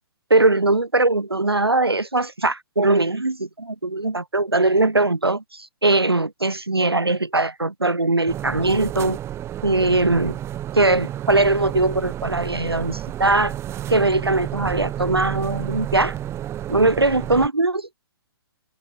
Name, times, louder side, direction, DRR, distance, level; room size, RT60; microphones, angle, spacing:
voice 1, 0.3-9.2 9.6-10.4 10.7-13.5 13.9-16.2 16.7-17.9, right 2 dB, 90° right, 6.4 m, -20 dB
sound 1, 8.3-17.5, right 12 dB, 20° right, 5.3 m, -31 dB
figure-of-eight pair, 125°, 12 cm